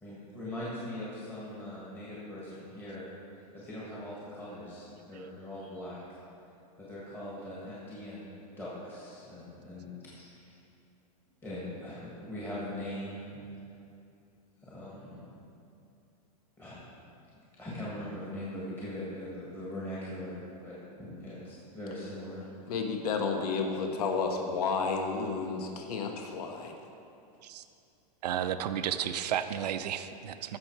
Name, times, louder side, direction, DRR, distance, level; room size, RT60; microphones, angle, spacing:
voice 1, 0.0-3.0 3.5-6.0 6.8-9.9 10.1-10.5 11.4-13.4 14.6-15.2 16.6-16.8 17.6-20.3 20.6-22.4, left 1 dB, 10° left, -8 dB, 1.6 m, -41 dB
voice 2, 22.7-26.7, left 4 dB, 75° left, 3 dB, 1.2 m, -31 dB
voice 3, 28.2-30.6, right 10 dB, 85° right, 10 dB, 0.6 m, -32 dB
15.5 x 6.3 x 4.6 m, 2.6 s
supercardioid pair, 170°, 20 cm